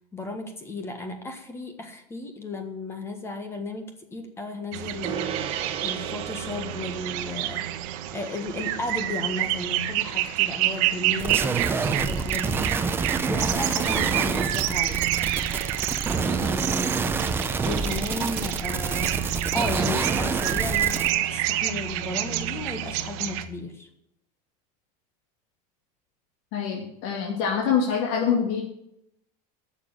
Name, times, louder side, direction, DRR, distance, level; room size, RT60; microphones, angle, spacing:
voice 1, 0.1-5.6 5.8-7.6 8.1-12.7 13.2-15.0 16.1-17.4 17.6-23.9, left 2 dB, 15° left, 6 dB, 1.5 m, -34 dB
sound 1, 4.7-23.5, right 13 dB, 60° right, 1.1 m, -29 dB
Gong, 5.0-14.7, right 8 dB, 35° right, 1.5 m, -39 dB
sound 2, 11.2-21.1, right 4 dB, 15° right, 0.6 m, -27 dB
voice 2, 26.5-28.6, left 7 dB, 55° left, -1 dB, 2.6 m, -25 dB
12.0 x 7.1 x 7.7 m, 0.76 s
cardioid pair, 165°, 18 cm